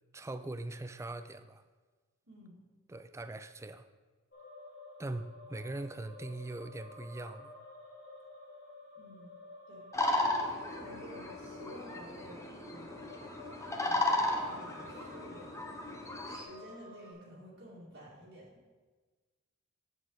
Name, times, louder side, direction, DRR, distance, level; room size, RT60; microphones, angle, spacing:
voice 1, 0.1-1.6 2.9-3.8 5.0-7.5, right 2 dB, 15° right, 10 dB, 0.3 m, -41 dB
voice 2, 2.3-2.6 5.5-5.6 9.0-9.4 9.7-9.9 10.7-13.0 13.8-15.5 16.2-18.5, equal, 55° right, -7 dB, 1.8 m, -52 dB
sound 1, 4.3-17.1, left 2 dB, 50° left, 1.7 m, -52 dB
sound 2, 9.9-16.4, left 1 dB, 15° left, 0.7 m, -35 dB
8.5 x 7.0 x 3.8 m, 1.3 s
head